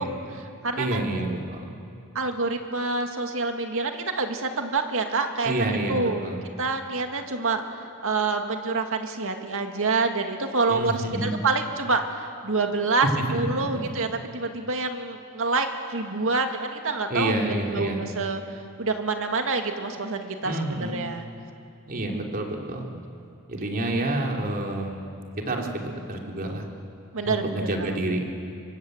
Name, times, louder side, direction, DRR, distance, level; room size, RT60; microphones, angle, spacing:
voice 1, 0.0-1.0 2.1-6.2 6.6-17.3 17.7-21.3 27.1-28.0, right 3 dB, 65° right, 5 dB, 2.2 m, -27 dB
voice 2, 0.8-1.7 5.4-6.4 10.7-11.3 13.3-13.8 17.1-18.0 20.4-21.0 21.9-22.9 23.5-25.1 25.5-26.6 27.2-28.3, right 1 dB, 40° right, 0 dB, 3.4 m, -28 dB
26.0 x 24.0 x 8.1 m, 2.4 s
head